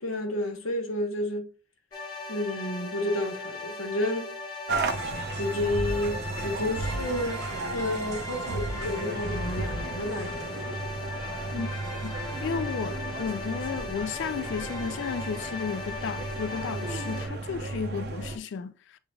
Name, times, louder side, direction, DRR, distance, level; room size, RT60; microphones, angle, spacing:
voice 1, 0.0-1.5 2.3-4.4 5.2-10.8, left 1 dB, 90° left, 1.2 m, -31 dB
sound 1, 1.9-17.3, left 2 dB, 20° left, 1.1 m, -38 dB
sound 2, 4.7-18.4, right 2 dB, 55° right, 0.6 m, -34 dB
voice 2, 12.4-18.7, left 6 dB, 60° left, 0.3 m, -33 dB
6.9 x 3.3 x 2.3 m
head